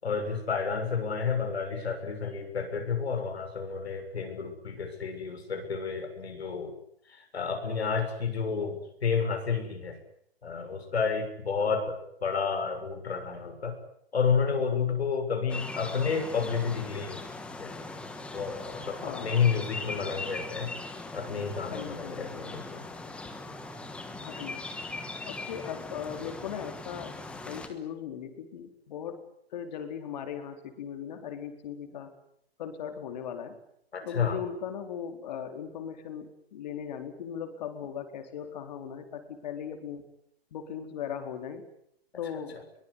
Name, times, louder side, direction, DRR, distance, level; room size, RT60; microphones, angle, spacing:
voice 1, 0.0-6.8 7.3-10.0 10.4-13.8 14.1-17.2 17.6-17.8 18.3-20.7 21.1-22.8 33.9-34.4, left 6 dB, 90° left, 5 dB, 6.9 m, -30 dB
sound 1, 15.5-27.7, left 3 dB, 5° left, 1.4 m, -40 dB
voice 2, 19.0-19.5 21.6-22.5 24.2-24.6 25.2-27.2 27.5-29.2 29.5-32.1 32.6-33.6 34.0-40.0 40.5-41.6 42.2-42.6, left 8 dB, 45° left, 6 dB, 4.3 m, -38 dB
23.0 x 20.0 x 9.9 m, 0.72 s
hypercardioid pair, 165°, 31 cm